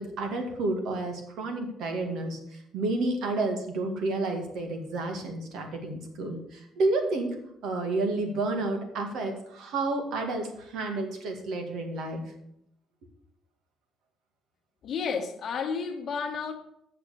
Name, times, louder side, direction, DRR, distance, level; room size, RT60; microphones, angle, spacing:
voice 1, 0.0-7.4 7.6-12.2, right 2 dB, 70° right, 4 dB, 2.2 m, -30 dB
voice 2, 14.8-16.5, left 5 dB, 40° left, 4 dB, 1.4 m, -31 dB
8.9 x 6.7 x 7.0 m, 0.76 s
cardioid pair, 165°, 0 cm